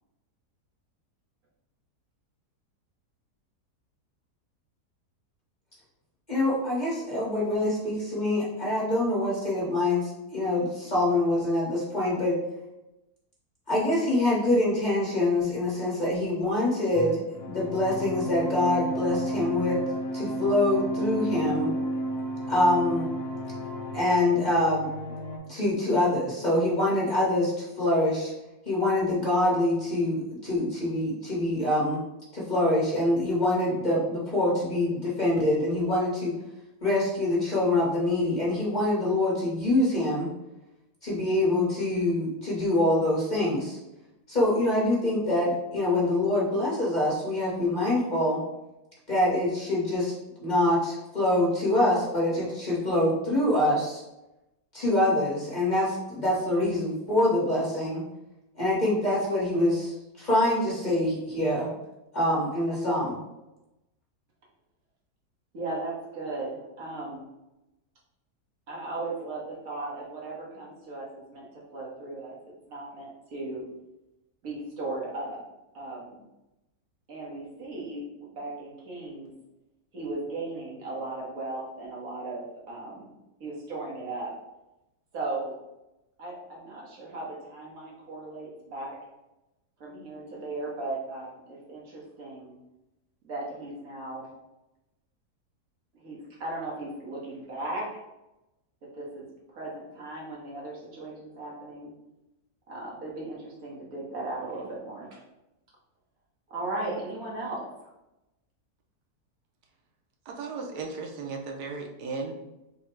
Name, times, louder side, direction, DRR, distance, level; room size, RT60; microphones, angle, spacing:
voice 1, 6.3-12.4 13.7-19.8 20.1-21.7 22.5-23.1 23.9-24.9 25.5-28.3 28.7-32.0 32.3-36.3 36.8-40.3 41.0-43.8 44.3-48.4 49.1-50.1 50.4-54.0 54.7-58.0 58.5-61.7 62.1-63.2, left 1 dB, 35° left, -7 dB, 0.9 m, -25 dB
sound 1, 16.9-25.4, equal, 60° left, 0.4 m, -32 dB
voice 2, 65.5-67.3 68.7-72.4 72.7-73.7 74.4-75.4 75.7-76.2 77.1-79.3 79.9-83.1 83.4-84.4 85.1-85.5 86.2-89.0 89.8-92.6 93.2-94.3 96.0-98.0 98.8-99.3 99.5-101.9 102.7-105.2 106.5-107.9, right 2 dB, 65° right, -3 dB, 1.5 m, -37 dB
voice 3, 110.3-112.3, right 4 dB, 90° right, 2 dB, 1.3 m, -35 dB
3.7 x 2.1 x 4.3 m, 0.95 s
omnidirectional pair, 1.7 m